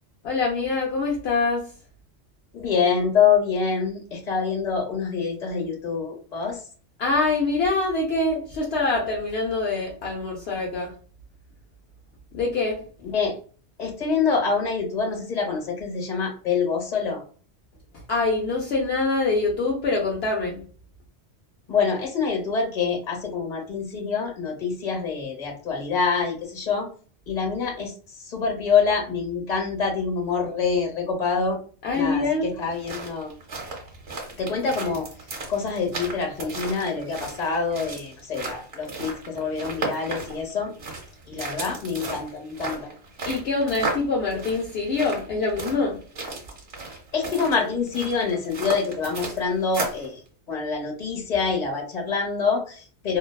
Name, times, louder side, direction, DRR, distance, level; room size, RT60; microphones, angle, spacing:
voice 1, 0.2-1.7 7.0-10.9 12.3-12.8 18.1-20.6 31.8-32.5 43.3-46.0, left 3 dB, 70° left, -2 dB, 0.8 m, -24 dB
voice 2, 2.5-6.6 13.1-13.3 13.8-17.2 21.7-26.9 27.3-31.6 31.9-33.3 34.4-35.1 35.5-40.7 41.3-42.9 47.1-50.2 50.5-53.2, left 5 dB, 40° left, 1 dB, 0.9 m, -26 dB
Foot Step Macadam, 32.6-50.1, right 3 dB, 60° right, 1.1 m, -35 dB
2.5 x 2.2 x 2.2 m, 0.41 s
omnidirectional pair, 1.2 m